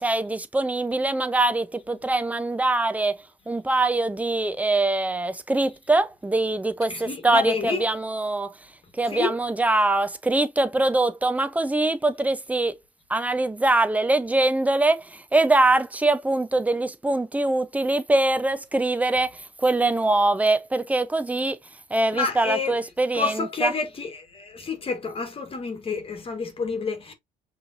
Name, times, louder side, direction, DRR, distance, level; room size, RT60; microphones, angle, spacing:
voice 1, 0.0-3.2 3.5-8.5 9.0-12.8 13.1-21.6 21.9-23.7, right 2 dB, 10° right, 0.6 m, -23 dB
voice 2, 6.9-7.8 9.1-9.4 22.1-22.8 23.1-27.1, left 4 dB, 35° left, 1.5 m, -29 dB
5.5 x 3.3 x 2.6 m
cardioid pair, 110°, 17 cm